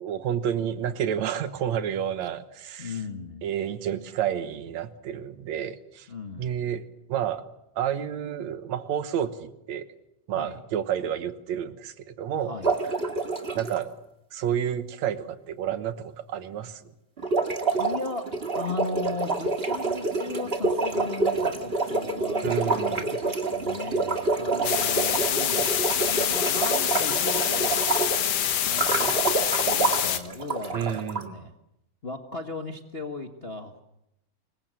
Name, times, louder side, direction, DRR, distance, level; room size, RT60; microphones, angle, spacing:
voice 1, 0.0-2.9 3.4-6.1 6.4-7.4 7.8-9.9 10.3-12.5 13.6-13.9 14.3-16.8 22.4-23.1 30.7-31.4, right 9 dB, 65° right, 11 dB, 2.3 m, -30 dB
voice 2, 2.8-3.5 6.1-6.6 10.3-10.6 12.4-12.8 17.8-18.3 18.5-31.5 32.0-33.8, left 3 dB, 75° left, 4 dB, 0.5 m, -37 dB
sound 1, 12.6-13.8 17.2-28.3 28.7-31.2, right 3 dB, 25° right, 1.5 m, -27 dB
sound 2, 24.6-30.2, left 10 dB, 60° left, 1.8 m, -26 dB
26.0 x 22.5 x 7.6 m, 0.85 s
omnidirectional pair, 3.8 m